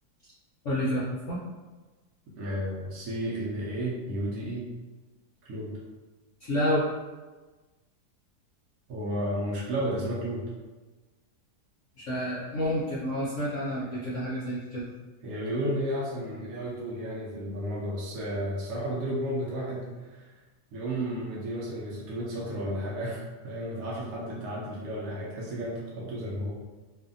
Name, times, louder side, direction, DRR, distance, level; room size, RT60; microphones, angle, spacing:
voice 1, 0.6-1.4 6.4-6.8 12.0-14.9, equal, 65° left, -7 dB, 0.7 m, -29 dB
voice 2, 2.4-4.7 5.5-5.8 8.9-10.5 13.9-14.0 15.2-20.3 20.7-26.5, equal, 65° right, -6 dB, 1.0 m, -33 dB
2.6 x 2.5 x 2.5 m, 1.2 s
omnidirectional pair, 1.8 m